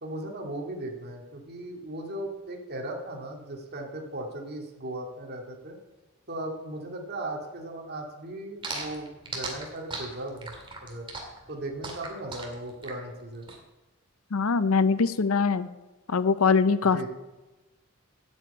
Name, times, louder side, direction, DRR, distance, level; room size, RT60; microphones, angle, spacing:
voice 1, 0.0-5.8 6.3-11.0 11.5-13.5 16.9-17.1, right 1 dB, 50° right, 1 dB, 2.1 m, -37 dB
sound 1, 8.6-13.6, right 3 dB, 25° right, 2.2 m, -37 dB
voice 2, 14.3-15.7 16.1-17.0, left 5 dB, 85° left, 15 dB, 0.6 m, -22 dB
9.0 x 8.1 x 8.4 m, 1.1 s
head